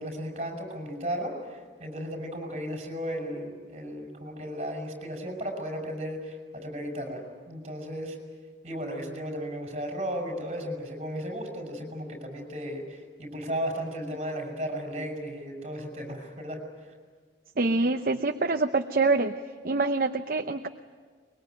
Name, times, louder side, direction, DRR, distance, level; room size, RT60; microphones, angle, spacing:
voice 1, 0.0-8.2 8.6-16.6, equal, 40° right, 2 dB, 5.8 m, -35 dB
voice 2, 17.6-19.3 19.6-20.7, right 3 dB, 55° right, 6 dB, 0.8 m, -25 dB
23.5 x 22.0 x 9.1 m, 1.6 s
head